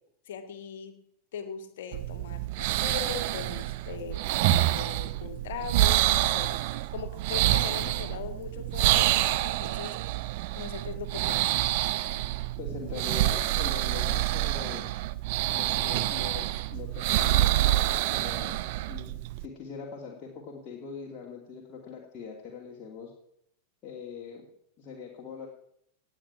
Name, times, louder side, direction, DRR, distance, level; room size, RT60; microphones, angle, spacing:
voice 1, 0.3-1.0 1.3-4.2 4.5-6.6 6.9-10.0 10.5-11.5, left 7 dB, 55° left, 7 dB, 2.0 m, -40 dB
sound 1, 1.9-19.5, right 16 dB, 50° right, 0.7 m, -27 dB
voice 2, 12.6-14.9 15.5-18.6 18.9-23.1 23.8-24.5 24.8-25.5, left 6 dB, 30° left, -2 dB, 2.7 m, -42 dB
18.0 x 9.0 x 6.1 m, 0.73 s
figure-of-eight pair, 90°, 0 cm